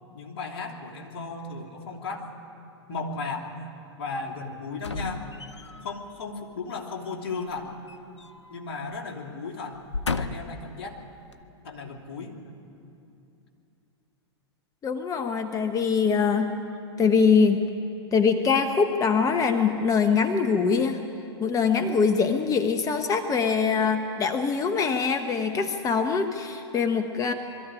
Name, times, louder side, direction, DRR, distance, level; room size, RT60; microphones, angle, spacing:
voice 1, 0.1-2.3 2.9-3.5 4.0-5.3 5.8-7.7 8.5-9.8 10.2-11.0 11.6-12.3, left 4 dB, 60° left, 1 dB, 2.9 m, -35 dB
sound 1, 4.8-5.9 7.5-8.6 8.9-9.1 9.7-10.7 11.3-11.4, left 4 dB, 90° left, 0.8 m, -34 dB
voice 2, 14.8-16.6 17.0-17.6 18.1-21.0 21.4-27.3, left 5 dB, 25° left, 7 dB, 1.1 m, -23 dB
22.0 x 13.5 x 9.9 m, 2.8 s
hypercardioid pair, 105°, 14 cm